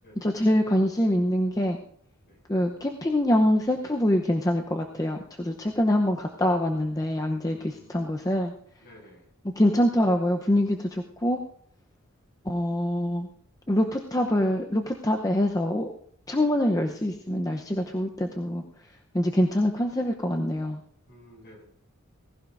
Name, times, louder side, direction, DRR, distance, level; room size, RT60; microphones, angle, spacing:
voice 1, 0.2-1.8 2.5-8.5 9.6-11.4 12.4-13.3 13.7-15.9 16.3-18.6 19.1-20.8, left 1 dB, 15° left, 2 dB, 0.8 m, -25 dB
voice 2, 7.5-8.0 8.8-9.3 21.1-21.6, equal, 50° left, 0 dB, 6.8 m, -52 dB
18.5 x 16.5 x 2.6 m, 0.64 s
head